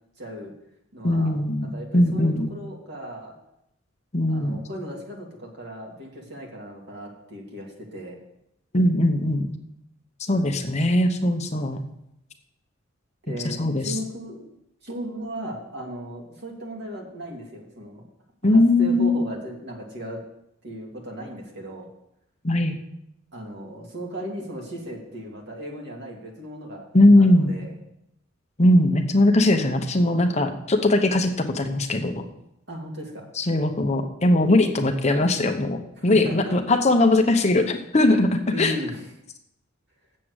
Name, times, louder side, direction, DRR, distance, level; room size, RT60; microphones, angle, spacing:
voice 1, 0.2-0.5 0.9-1.3 1.6-3.3 4.3-8.2 13.2-14.5 14.8-18.0 18.5-20.2 20.6-21.9 23.3-26.9 27.2-27.8 32.7-33.3 36.0-36.6 38.5-39.1, equal, 60° right, -1 dB, 2.6 m, -36 dB
voice 2, 1.0-2.5 4.1-4.6 8.7-9.6 10.2-11.8 13.4-13.9 18.4-19.2 22.4-22.7 26.9-27.5 28.6-32.3 33.4-38.7, left 1 dB, 35° left, 5 dB, 0.9 m, -20 dB
7.5 x 7.5 x 8.1 m, 0.80 s
head